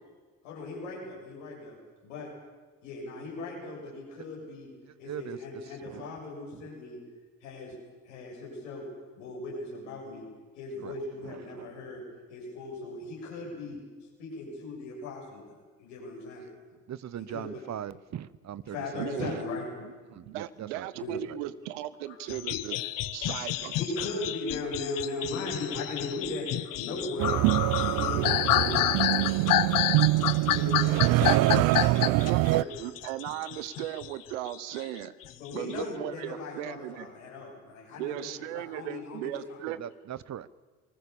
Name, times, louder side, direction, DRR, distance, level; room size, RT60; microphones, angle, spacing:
voice 1, 0.4-1.8 2.0-2.3 2.8-4.7 5.0-7.0 7.4-7.8 8.0-8.9 9.2-10.2 10.6-12.0 12.3-16.5 17.2-17.7 18.7-19.7 20.1-20.2 21.0-21.2 22.1-22.2 23.8-27.4 27.7-29.7 30.1-32.8 35.3-39.6, left 2 dB, 90° left, -3 dB, 7.8 m, -38 dB
voice 2, 5.0-5.4 5.8-6.1 6.5-6.6 10.8-10.9 11.2-11.7 16.9-19.4 20.1-20.9 39.7-40.5, right 10 dB, 50° right, 18 dB, 1.0 m, -40 dB
voice 3, 19.0-19.3 19.8-19.9 20.2-22.8 23.1-23.8 31.8-35.1 35.5-37.1 38.0-39.8, right 14 dB, 85° right, 15 dB, 1.0 m, -37 dB
sound 1, 22.3-34.1 34.5-35.8, left 14 dB, 65° left, 1.0 m, -29 dB
sound 2, 27.2-32.6, right 18 dB, 70° right, 0.6 m, -24 dB
sound 3, 28.8-28.9 29.1-29.2 29.5-29.6 30.2-30.9 31.2-31.8 32.3-32.4 33.0-33.5, left 11 dB, 45° left, 0.8 m, -39 dB
28.5 x 20.0 x 7.1 m, 1.4 s
hypercardioid pair, 55°, 35 cm